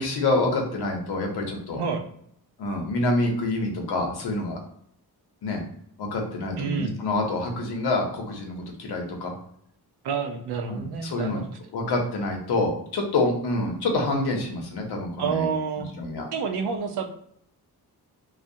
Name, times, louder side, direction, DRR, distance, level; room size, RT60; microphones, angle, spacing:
voice 1, 0.0-1.8 2.6-4.6 5.4-5.6 6.0-9.3 10.7-11.4 11.7-15.5 15.9-16.2, left 2 dB, 90° left, 1 dB, 0.8 m, -27 dB
voice 2, 6.6-6.9 10.0-11.5 15.2-15.9 16.3-17.1, right 6 dB, 90° right, 5 dB, 0.5 m, -28 dB
2.3 x 2.1 x 2.6 m, 0.69 s
wide cardioid pair, 115°, 38 cm